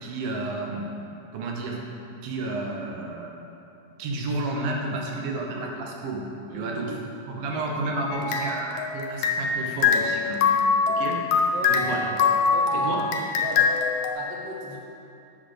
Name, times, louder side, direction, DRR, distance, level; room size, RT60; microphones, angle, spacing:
voice 1, 0.0-0.9 1.3-1.8 2.2-3.3 4.0-6.3 6.5-6.9 7.3-10.6 10.9-11.2 11.7-12.1 12.7-13.0, right 2 dB, 85° right, -1 dB, 2.7 m, -31 dB
voice 2, 6.5-7.1 11.5-12.1 12.5-12.9 13.4-13.7 14.1-14.8, right 1 dB, 65° right, -2 dB, 1.7 m, -37 dB
sound 1, 8.1-9.6 9.8-14.1, left 5 dB, 80° left, 1.7 m, -23 dB
8.3 x 4.0 x 6.5 m, 2.7 s
omnidirectional pair, 3.9 m